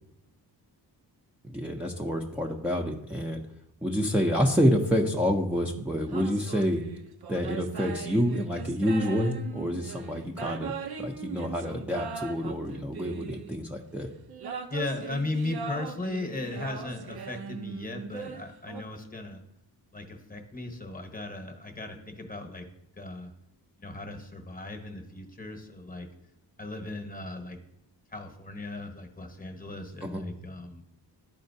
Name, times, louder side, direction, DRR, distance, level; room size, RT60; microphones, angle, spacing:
voice 1, 1.4-3.4 3.8-6.8 7.3-10.7 11.0-14.1 30.0-30.2, equal, 5° right, -1 dB, 0.6 m, -28 dB
sound 1, 6.1-13.7 14.3-18.8, right 6 dB, 65° right, 0.7 m, -40 dB
voice 2, 14.7-19.4 19.9-22.7 23.0-23.3 23.8-26.1 26.6-27.6 28.1-30.8, left 2 dB, 20° left, 4 dB, 1.1 m, -37 dB
12.0 x 4.2 x 2.7 m, 0.78 s
cardioid pair, 90°, 41 cm